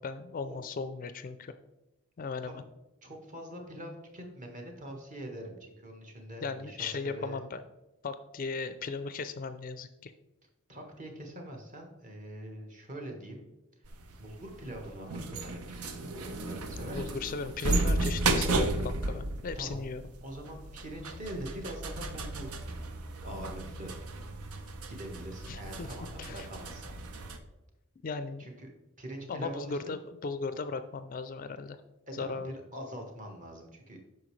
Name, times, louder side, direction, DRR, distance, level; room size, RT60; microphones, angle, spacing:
voice 1, 0.0-1.5 2.2-2.6 6.4-7.6 8.0-10.1 16.9-20.0 25.5-25.9 26.2-26.5 28.0-28.4 29.3-31.8 32.1-32.5, left 4 dB, 40° left, 11 dB, 0.4 m, -37 dB
voice 2, 3.0-7.4 10.7-13.5 14.2-17.1 19.5-19.8 20.2-22.7 23.2-23.9 24.9-26.9 28.4-28.7 29.0-29.9 32.1-34.0, right 1 dB, 35° right, 1 dB, 1.4 m, -43 dB
sound 1, 13.8-27.4, right 2 dB, 90° right, 0.7 m, -34 dB
8.8 x 6.0 x 3.2 m, 0.96 s
head